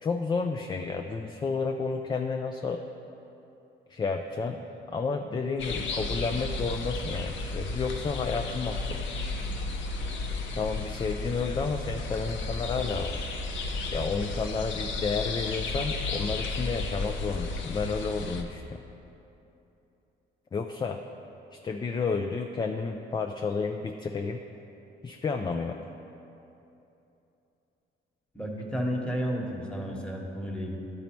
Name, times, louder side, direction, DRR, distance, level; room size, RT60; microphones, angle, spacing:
voice 1, 0.0-2.8 3.9-9.0 10.5-13.2 13.9-18.8 20.5-21.0 21.5-24.4 25.0-25.8, left 4 dB, 25° left, 4 dB, 0.3 m, -31 dB
sound 1, 5.6-18.4, left 3 dB, 70° left, 0.7 m, -33 dB
voice 2, 28.3-30.8, equal, 5° left, -1 dB, 1.2 m, -32 dB
11.5 x 4.1 x 4.5 m, 2.9 s
cardioid pair, 90°, 20 cm